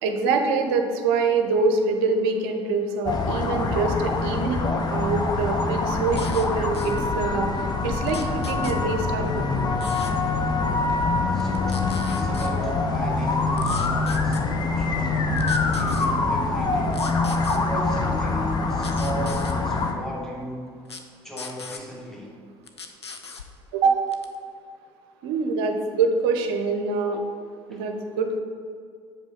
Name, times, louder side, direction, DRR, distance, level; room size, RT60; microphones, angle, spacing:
voice 1, 0.0-9.7 23.7-24.0 25.2-27.2 27.7-28.4, right 4 dB, 60° right, 5 dB, 0.7 m, -25 dB
sound 1, 3.1-19.9, left 3 dB, 30° left, 0.7 m, -24 dB
sound 2, 6.1-6.5 6.7-7.0 8.0-8.8 9.8-10.1 11.4-12.5 13.6-14.4 15.4-16.1 16.9-17.6 18.8-19.6 20.8-21.0 21.4-21.8 22.7-23.5 24.1-24.3, left 4 dB, 85° left, 0.4 m, -39 dB
voice 2, 11.3-15.5 15.7-17.0 17.5-20.7 21.2-22.3 27.7-27.8, equal, 5° left, -3 dB, 1.6 m, -36 dB
6.8 x 5.1 x 3.7 m, 2.2 s
figure-of-eight pair, 60°, 14 cm